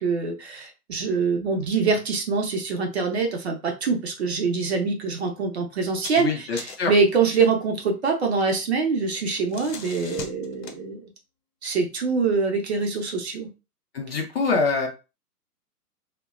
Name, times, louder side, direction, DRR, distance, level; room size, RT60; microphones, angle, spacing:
voice 1, 0.0-11.0 11.6-13.5, right 4 dB, 45° right, 3 dB, 0.6 m, -24 dB
sound 1, 5.9-6.3 6.6-7.0 9.2-10.8, left 5 dB, 85° left, 0.8 m, -39 dB
voice 2, 6.2-6.9 13.9-14.9, left 4 dB, 40° left, 2 dB, 0.5 m, -25 dB
2.7 x 2.1 x 2.4 m, 0.29 s
hypercardioid pair, 135°, 47 cm